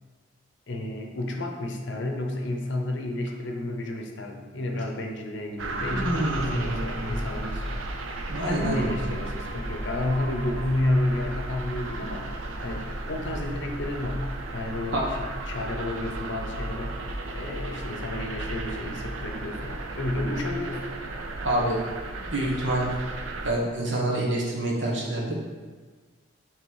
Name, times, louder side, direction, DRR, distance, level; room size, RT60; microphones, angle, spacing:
voice 1, 0.7-8.1 8.4-12.3 12.6-17.0 17.3-20.9, left 1 dB, 65° left, 3 dB, 0.7 m, -31 dB
sound 1, 5.6-23.5, right 2 dB, 90° right, 0.6 m, -34 dB
voice 2, 5.9-7.1 8.3-8.9 14.9-15.0 21.4-21.8 22.2-22.9 23.4-25.4, right 1 dB, 70° right, -3 dB, 1.4 m, -27 dB
5.9 x 3.5 x 4.7 m, 1.4 s
head